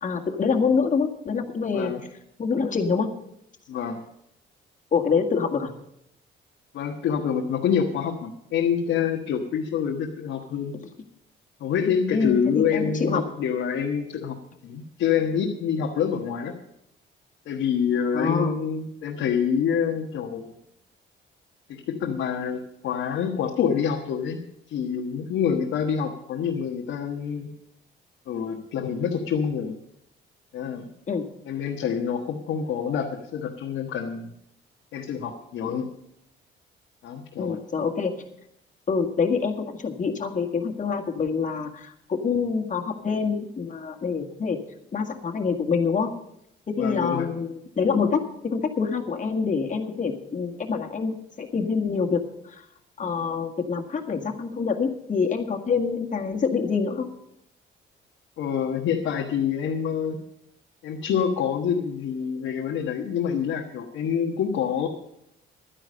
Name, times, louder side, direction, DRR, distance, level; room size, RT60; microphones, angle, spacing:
voice 1, 0.0-1.9 2.4-3.1 4.9-5.7 12.1-13.3 18.1-18.5 31.1-31.2 37.4-38.2 38.9-44.6 44.9-46.1 46.7-52.7 53.0-57.1, left 5 dB, 40° left, 2 dB, 1.8 m, -26 dB
voice 2, 3.7-4.0 6.7-10.7 11.6-14.4 14.6-16.5 17.5-20.5 21.7-27.5 28.3-29.7 30.5-30.9 31.5-34.3 34.9-35.9 37.0-37.6 46.8-47.3 58.4-60.2 60.8-64.9, left 7 dB, 80° left, 0 dB, 1.4 m, -26 dB
11.5 x 10.0 x 6.6 m, 0.77 s
cardioid pair, 90°, 20 cm